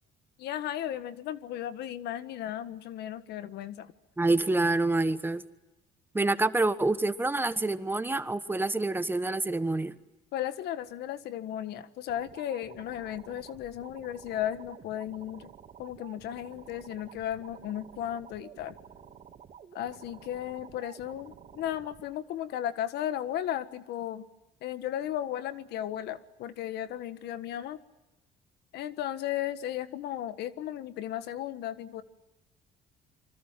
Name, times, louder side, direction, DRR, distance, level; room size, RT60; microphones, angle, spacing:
voice 1, 0.4-3.9 10.3-15.5 15.8-18.8 19.7-24.2 24.6-27.8 28.7-32.0, left 11 dB, 75° left, 12 dB, 1.5 m, -35 dB
voice 2, 4.2-5.4 6.1-9.9, right 2 dB, 10° right, 12 dB, 1.2 m, -27 dB
sound 1, 12.1-22.1, right 8 dB, 45° right, 3.1 m, -51 dB
26.5 x 25.0 x 7.5 m, 0.99 s
cardioid pair, 110°, 17 cm